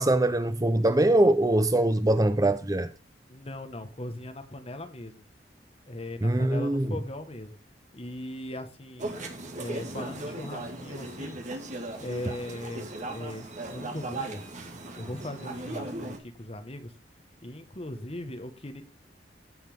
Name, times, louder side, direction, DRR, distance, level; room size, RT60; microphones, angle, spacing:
voice 1, 0.0-2.9 6.2-6.9, right 1 dB, 20° right, 0.6 m, -23 dB
voice 2, 3.3-5.3 5.9-7.6 7.9-9.2 9.6-11.4 12.0-14.4 15.0-16.9 17.4-18.8, left 1 dB, 35° left, 1.6 m, -39 dB
sound 1, 9.0-16.2, right 2 dB, 45° right, 2.2 m, -37 dB
16.0 x 5.8 x 3.7 m
head